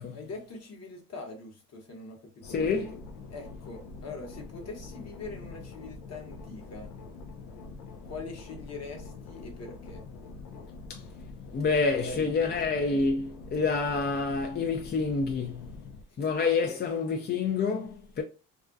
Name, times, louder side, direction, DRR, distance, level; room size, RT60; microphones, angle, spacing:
voice 1, 0.1-2.7 3.3-6.9 8.0-10.0 12.0-12.6 16.2-16.3, left 3 dB, 50° left, 1.0 m, -43 dB
sound 1, 2.4-16.0, left 4 dB, 90° left, 0.5 m, -45 dB
voice 2, 2.4-3.0 10.9-11.0 11.5-15.7 16.2-18.2, left 4 dB, 30° left, 0.4 m, -28 dB
2.4 x 2.1 x 2.4 m
supercardioid pair, 75°, 34 cm